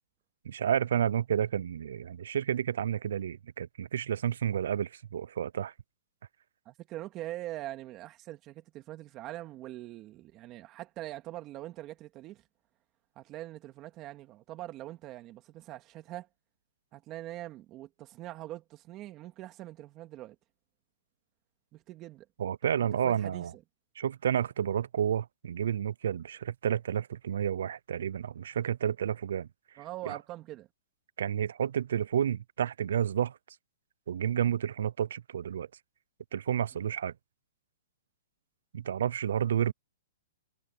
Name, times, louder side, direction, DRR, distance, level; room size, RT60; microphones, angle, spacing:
voice 1, 0.4-5.7 22.4-23.5 24.0-29.5 29.7-30.2 31.2-33.4 34.1-35.7 36.3-37.1 38.7-39.7, right 9 dB, 70° right, 0.5 m, -30 dB
voice 2, 6.6-12.4 13.2-16.3 16.9-20.4 21.7-22.3 22.9-23.6 29.8-30.7, right 15 dB, 25° right, 2.6 m, -43 dB
hypercardioid pair, 155°, 0 cm